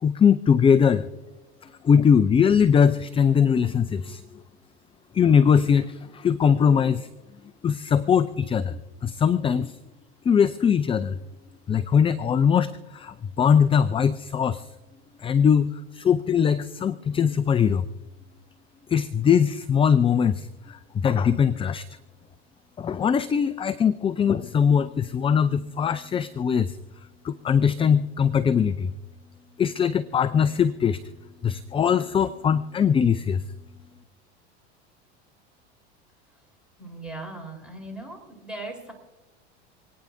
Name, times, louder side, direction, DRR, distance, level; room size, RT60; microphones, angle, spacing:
voice 1, 0.0-1.1 1.8-4.2 5.1-7.1 7.6-9.8 10.3-11.2 11.7-14.7 15.2-17.9 18.9-21.8 22.8-26.8 27.2-28.9 29.6-31.0 31.4-33.4, left 7 dB, 15° left, 14 dB, 0.4 m, -21 dB
voice 2, 36.8-38.9, right 2 dB, 5° right, 1 dB, 4.0 m, -38 dB
28.5 x 9.6 x 2.6 m, 1.2 s
hypercardioid pair, 90°, 33 cm